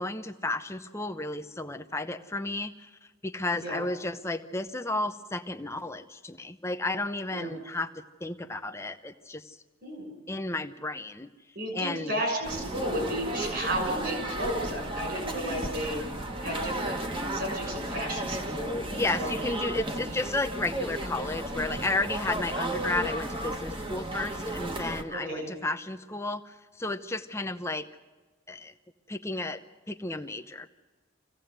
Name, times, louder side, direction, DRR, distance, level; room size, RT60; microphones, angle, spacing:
voice 1, 0.0-2.9 3.2-9.6 10.3-11.3 11.7-12.2 18.6-27.9 28.5-28.7 29.1-29.6 29.9-30.7, left 2 dB, 15° left, 8 dB, 0.8 m, -33 dB
voice 2, 3.5-3.8 7.3-7.5 9.8-10.1 11.5-16.1 16.4-17.0 17.3-18.7 19.2-19.4 25.1-25.5, equal, 50° right, 3 dB, 6.8 m, -33 dB
sound 1, 12.4-25.0, right 1 dB, 25° right, 1.5 m, -34 dB
25.5 x 16.5 x 8.0 m, 1.3 s
head